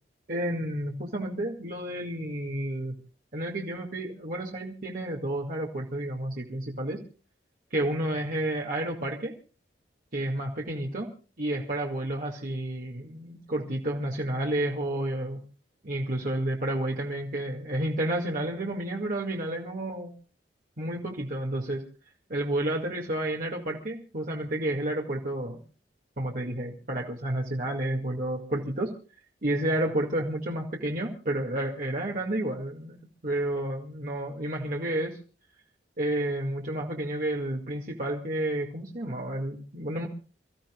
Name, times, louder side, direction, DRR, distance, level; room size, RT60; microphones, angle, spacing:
voice 1, 0.3-3.0 3.3-7.0 7.7-9.3 10.1-11.1 11.4-15.4 15.8-20.1 20.8-21.9 22.3-25.6 26.2-28.9 29.4-35.2 36.0-40.1, right 1 dB, 50° right, -1 dB, 2.1 m, -30 dB
29.0 x 14.5 x 2.3 m, 0.36 s
head